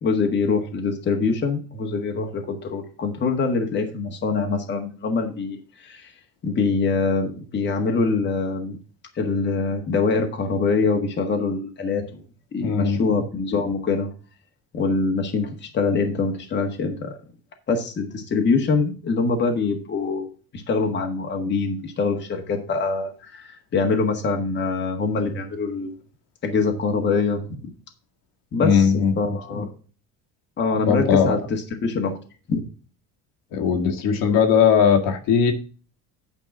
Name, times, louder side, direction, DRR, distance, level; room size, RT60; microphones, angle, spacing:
voice 1, 0.0-6.1 6.4-8.8 9.1-12.2 12.5-14.1 14.7-17.2 17.7-20.3 20.5-25.9 26.4-27.7 28.5-28.9 29.2-29.7 30.6-31.4 31.8-32.1 32.5-32.6, left 4 dB, 30° left, 3 dB, 1.5 m, -24 dB
voice 2, 12.6-13.1 28.5-29.1 29.6-29.7 30.9-31.4 33.5-35.5, left 7 dB, 70° left, 3 dB, 1.8 m, -19 dB
8.9 x 4.4 x 6.0 m, 0.38 s
cardioid pair, 140°, 35 cm